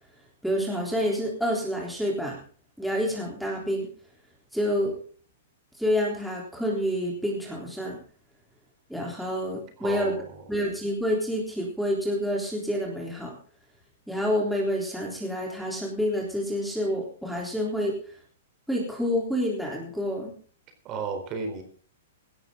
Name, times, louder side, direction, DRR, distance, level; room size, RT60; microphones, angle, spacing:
voice 1, 0.4-2.4 2.8-3.9 4.5-4.9 5.8-8.0 8.9-10.1 10.5-13.4 14.1-17.9 18.7-20.3, equal, ahead, -2 dB, 3.7 m, -28 dB
voice 2, 9.8-10.3 20.8-21.6, right 4 dB, 30° right, 6 dB, 4.1 m, -33 dB
17.5 x 13.0 x 3.9 m, 0.42 s
hypercardioid pair, 155°, 0 cm